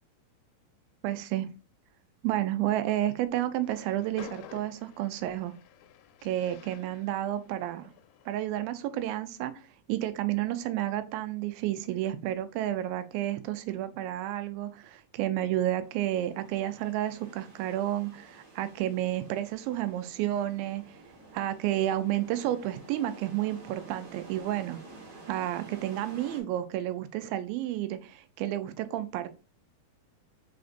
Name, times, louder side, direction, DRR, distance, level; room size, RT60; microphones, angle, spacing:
voice 1, 1.0-1.5 2.2-5.5 6.2-7.9 8.3-20.8 21.3-24.8 25.3-29.3, right 13 dB, 80° right, 2.2 m, -31 dB
Train, 3.5-8.8, left 11 dB, 80° left, 2.1 m, -52 dB
Manhattan Beach - Under the Pier, 15.7-26.4, right 3 dB, 55° right, 1.4 m, -51 dB
5.0 x 4.2 x 2.5 m
omnidirectional pair, 4.3 m